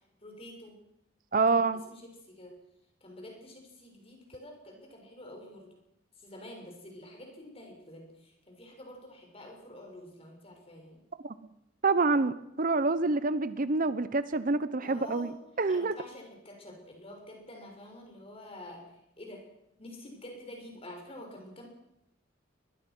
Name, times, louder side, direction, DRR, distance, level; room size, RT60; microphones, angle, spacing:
voice 1, 0.2-0.8 1.5-1.6 1.9-2.5 3.0-5.7 6.2-11.0 14.8-15.3 15.7-19.4 19.8-21.7, left 1 dB, 30° left, 2 dB, 6.8 m, -48 dB
voice 2, 1.3-1.8 11.2-11.4 11.8-15.3 15.6-15.9, right 3 dB, 45° right, 14 dB, 0.8 m, -27 dB
23.5 x 21.0 x 6.2 m, 0.80 s
head